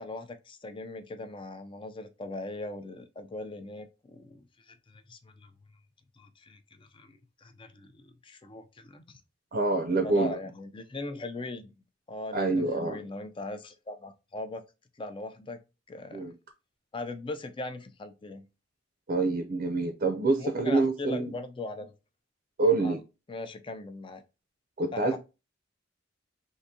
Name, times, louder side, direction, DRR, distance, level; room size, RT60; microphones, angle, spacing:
voice 1, 0.0-5.5 6.2-9.2 10.0-11.7 12.1-14.6 15.0-15.6 15.9-16.3 16.9-18.4 20.4-21.9 22.8-23.0 23.3-24.2 24.9-25.2, left 2 dB, 25° left, 0.5 m, -40 dB
voice 2, 9.5-10.3 12.3-13.0 16.1-16.3 19.1-21.3 22.6-23.0 24.8-25.2, right 3 dB, 45° right, 0.5 m, -26 dB
3.8 x 2.6 x 2.7 m
head